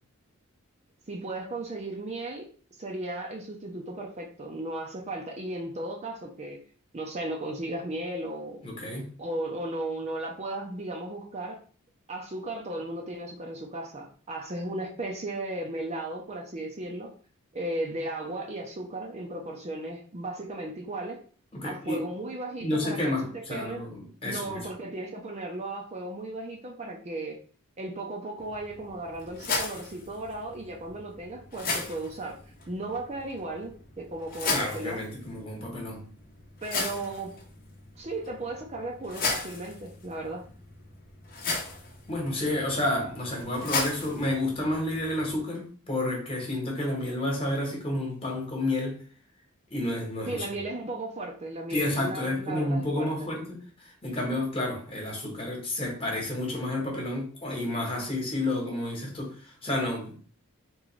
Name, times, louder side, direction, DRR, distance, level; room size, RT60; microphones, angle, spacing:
voice 1, 1.1-2.5 2.8-6.6 6.9-8.7 9.2-11.6 12.1-17.1 17.5-21.2 21.6-23.8 24.2-27.4 27.8-32.4 32.7-33.7 34.0-35.0 36.6-37.3 38.0-40.4 50.3-53.3, right 2 dB, 30° right, 0.6 m, -35 dB
voice 2, 8.6-9.1 21.5-22.0 22.6-24.6 34.5-36.1 42.1-49.0 49.7-50.4 51.7-60.2, left 1 dB, 25° left, 1.3 m, -30 dB
sound 1, 28.4-45.4, left 3 dB, 40° left, 0.8 m, -36 dB
3.7 x 3.0 x 3.1 m
head